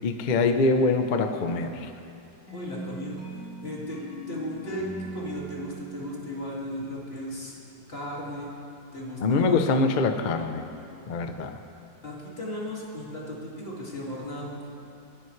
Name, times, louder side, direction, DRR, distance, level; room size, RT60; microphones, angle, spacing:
voice 1, 0.0-1.9 9.2-10.7 11.1-11.6, left 3 dB, 60° left, 7 dB, 0.4 m, -24 dB
sound 1, 2.5-7.4, right 2 dB, 80° left, 4.1 m, -40 dB
voice 2, 2.5-4.0 4.3-7.6 7.9-8.5 8.9-9.8 12.0-14.7, left 1 dB, 30° left, -5 dB, 2.6 m, -36 dB
27.5 x 10.0 x 3.3 m, 2.7 s
omnidirectional pair, 1.9 m